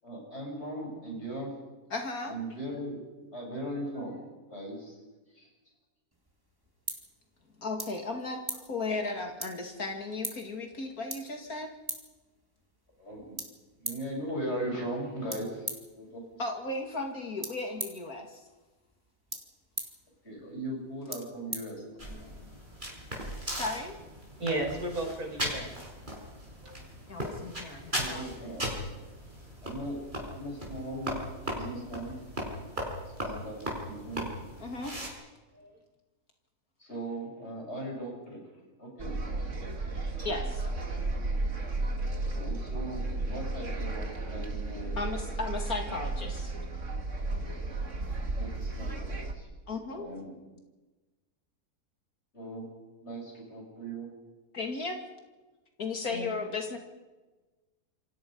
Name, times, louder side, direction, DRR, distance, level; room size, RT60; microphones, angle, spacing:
voice 1, 0.0-1.5 2.3-3.0 3.3-4.2 4.5-5.0 5.3-5.5 13.0-13.4 13.8-15.7 15.9-16.4 20.2-21.8 27.9-28.6 29.6-30.0 30.3-31.2 31.5-32.1 33.2-34.3 36.8-38.4 38.8-39.2 42.3-44.9 48.4-49.5 49.9-50.3 52.3-52.7 53.0-54.1, right 1 dB, 40° left, -1 dB, 7.9 m, -38 dB
voice 2, 1.9-2.4 7.6-11.7 16.4-18.4 22.0-22.5 23.5-24.0 27.1-28.5 34.6-34.9 40.2-40.7 44.9-46.5 49.7-50.1 54.5-55.0 55.8-56.8, left 3 dB, 65° left, 3 dB, 2.8 m, -35 dB
sound 1, 6.1-22.4, right 1 dB, 15° right, 2.8 m, -44 dB
sound 2, 22.0-35.1, equal, 30° right, 6.0 m, -38 dB
voice 3, 24.4-25.7 26.6-26.8 33.2-33.3 35.5-35.7 56.1-56.3, right 2 dB, 65° right, 1 dB, 6.0 m, -34 dB
sound 3, 39.0-49.3, right 2 dB, 50° right, 2.5 m, -33 dB
28.0 x 24.5 x 5.5 m, 1.2 s
omnidirectional pair, 1.7 m